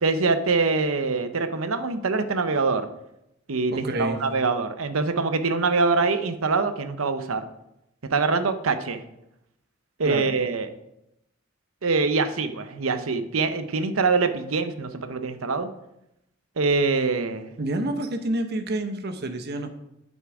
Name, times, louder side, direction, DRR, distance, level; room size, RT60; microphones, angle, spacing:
voice 1, 0.0-2.9 3.5-7.4 8.1-9.0 10.0-10.7 11.8-15.7 16.6-17.5, right 4 dB, 85° right, 10 dB, 0.8 m, -24 dB
voice 2, 3.7-4.2 10.0-10.4 17.6-19.7, right 1 dB, 50° right, 7 dB, 0.9 m, -28 dB
9.2 x 6.1 x 4.8 m, 0.85 s
head